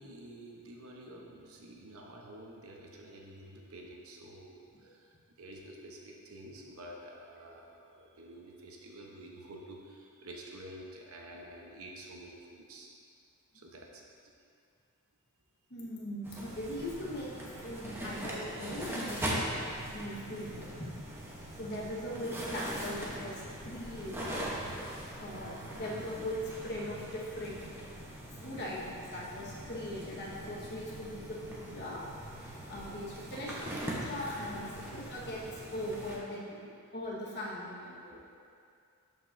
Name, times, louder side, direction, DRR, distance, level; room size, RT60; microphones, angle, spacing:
voice 1, 0.0-12.9 13.5-14.3 34.4-34.5, right 1 dB, 65° right, -1 dB, 0.9 m, -49 dB
voice 2, 15.7-17.3 17.6-19.5 19.9-21.0 21.5-24.6 25.2-27.6 28.4-32.0 32.4-34.6 34.9-35.4 35.7-38.2, left 1 dB, 50° left, -5 dB, 1.4 m, -40 dB
sound 1, 16.2-36.2, right 1 dB, 10° right, 0.9 m, -41 dB
12.0 x 5.3 x 2.6 m, 2.4 s
head